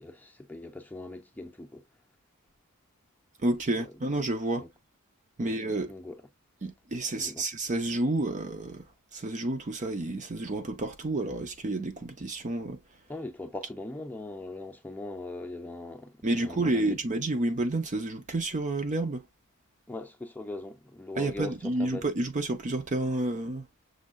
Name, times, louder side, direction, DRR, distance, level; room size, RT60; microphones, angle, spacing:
voice 1, 0.0-1.9 3.8-3.9 4.6-4.7 5.4-5.6 5.9-6.2 7.1-7.4 13.1-16.8 19.9-22.1, left 2 dB, 10° left, 0.7 m, -40 dB
voice 2, 3.4-4.7 5.4-5.9 6.6-8.8 9.1-12.8 16.2-19.2 21.2-23.7, right 2 dB, 35° right, 0.6 m, -30 dB
6.4 x 2.7 x 2.5 m
head